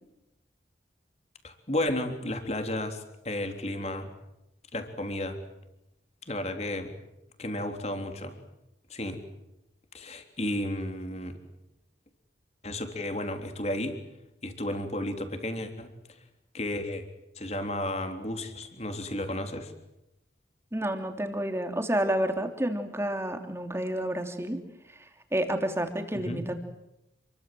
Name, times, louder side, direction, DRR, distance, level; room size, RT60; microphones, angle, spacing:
voice 1, 1.4-4.1 4.7-5.4 6.3-6.9 7.4-8.4 8.9-9.2 9.9-11.4 12.6-14.0 14.4-15.9 16.5-17.0 17.4-19.7 26.1-26.4, left 1 dB, 35° left, 6 dB, 3.5 m, -33 dB
voice 2, 20.7-24.6 24.9-26.5, right 1 dB, 15° right, 5 dB, 3.0 m, -30 dB
29.0 x 23.0 x 7.8 m, 0.89 s
head